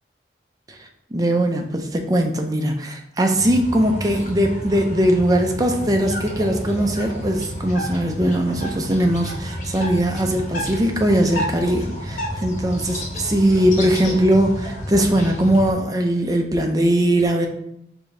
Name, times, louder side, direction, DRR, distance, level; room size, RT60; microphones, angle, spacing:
voice 1, 0.7-17.5, right 1 dB, 20° right, 3 dB, 0.5 m, -20 dB
sound 1, 3.4-15.7, equal, 45° left, 0.9 m, -30 dB
4.8 x 2.7 x 3.8 m, 0.73 s
head